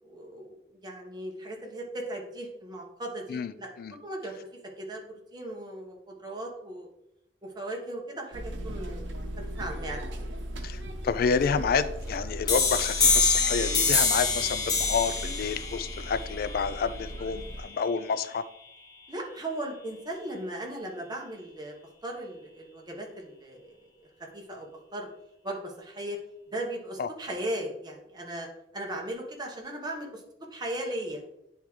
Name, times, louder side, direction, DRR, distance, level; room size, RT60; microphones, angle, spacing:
voice 1, 0.0-4.4 4.8-6.9 7.4-10.2 14.3-14.5 19.1-21.8 22.0-23.8 24.3-25.1 25.4-26.2 26.5-28.5 28.7-30.2 30.5-31.2, right 1 dB, 25° right, 0 dB, 1.1 m, -37 dB
sound 1, 8.3-17.6, right 1 dB, 85° right, 0.8 m, -37 dB
voice 2, 10.6-18.4 27.0-27.1, left 6 dB, 55° left, 14 dB, 0.3 m, -29 dB
sound 2, 12.5-17.9, left 4 dB, 25° left, 0.9 m, -26 dB
9.9 x 3.6 x 3.1 m, 0.82 s
head